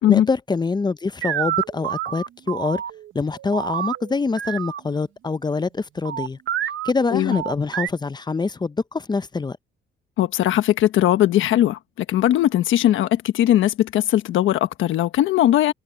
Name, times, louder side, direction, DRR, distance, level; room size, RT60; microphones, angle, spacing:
voice 1, 0.1-2.8 3.1-6.4 6.8-9.6, left 4 dB, 20° left, 0.6 m, -25 dB
sound 1, 1.2-4.8 6.0-6.9 7.3-7.9, right 11 dB, 75° right, 1.1 m, -28 dB
voice 2, 10.2-11.8 12.1-15.7, left 12 dB, 80° left, 1.2 m, -19 dB
cardioid pair, 90°, 20 cm